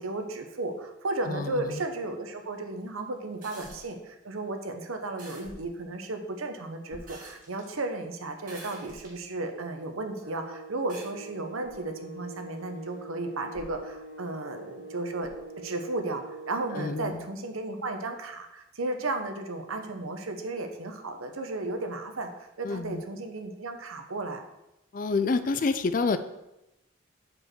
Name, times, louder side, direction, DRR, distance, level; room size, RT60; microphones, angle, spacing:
voice 1, 0.0-15.3 15.6-22.3 22.6-24.4, right 2 dB, 85° right, 5 dB, 0.8 m, -34 dB
voice 2, 1.3-1.8 16.7-17.3 22.6-23.0 24.9-26.2, left 4 dB, 40° left, 11 dB, 0.4 m, -28 dB
sound 1, 3.4-3.9 5.2-5.5 7.1-7.7 8.4-9.2 9.8-9.9 10.9-11.1 12.6-12.7, right 3 dB, 40° right, 1.7 m, -47 dB
sound 2, 3.6-4.1 5.4-5.9 6.9-7.5 8.0-8.1 8.8-9.2 11.6-11.9 13.5-14.0 15.2-15.5, equal, ahead, 1.5 m, -51 dB
sound 3, 10.2-17.2, right 3 dB, 60° right, 1.5 m, -44 dB
5.0 x 4.7 x 6.1 m, 0.91 s
head